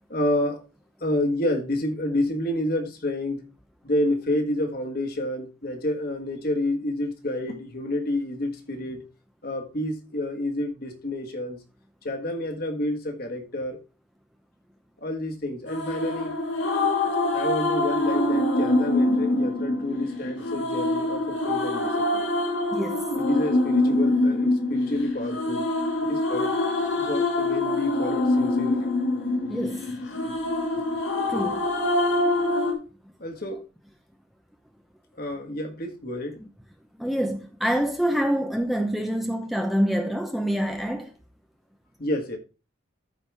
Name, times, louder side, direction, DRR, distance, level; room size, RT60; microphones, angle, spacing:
voice 1, 0.1-0.6 1.0-3.5 3.8-9.0 9.4-11.6 12.0-13.8 15.0-16.3 17.3-22.3 23.1-25.7 26.0-26.6 27.0-29.0 33.2-33.6 35.1-36.4 42.0-42.4, left 1 dB, 50° left, 1.6 m, -29 dB
sound 1, 15.7-32.7, left 2 dB, 75° left, 1.9 m, -25 dB
voice 2, 22.7-23.0 29.5-29.8 31.3-31.7 36.4-36.5 37.0-41.1, equal, ahead, 0.8 m, -26 dB
13.5 x 5.0 x 3.4 m
head